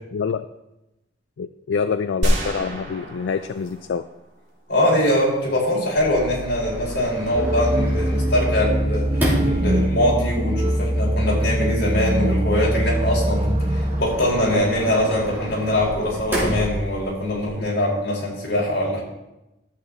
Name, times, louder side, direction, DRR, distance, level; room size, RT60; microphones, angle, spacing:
voice 1, 0.1-0.5 1.4-4.0 17.6-17.7, left 6 dB, 80° left, 11 dB, 0.4 m, -26 dB
sound 1, 2.2-4.5, equal, 65° right, 2.8 m, -26 dB
voice 2, 4.7-19.0, left 1 dB, 60° left, -4 dB, 4.4 m, -22 dB
Sliding door, 6.0-17.5, equal, 10° right, 2.8 m, -32 dB
sound 2, 7.3-14.0, right 1 dB, 30° right, 0.7 m, -22 dB
12.0 x 7.8 x 3.9 m, 0.95 s
head